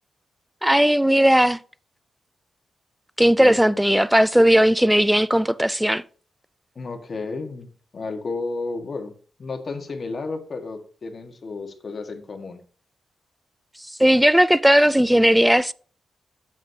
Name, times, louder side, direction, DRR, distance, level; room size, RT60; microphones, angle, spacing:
voice 1, 0.6-1.6 3.2-6.0 14.0-15.7, equal, 5° right, 0.4 m, -17 dB
voice 2, 3.4-3.8 6.7-9.1 9.4-12.6, left 3 dB, 45° left, 1.6 m, -32 dB
12.5 x 7.5 x 2.8 m
cardioid pair, 80°, 0 cm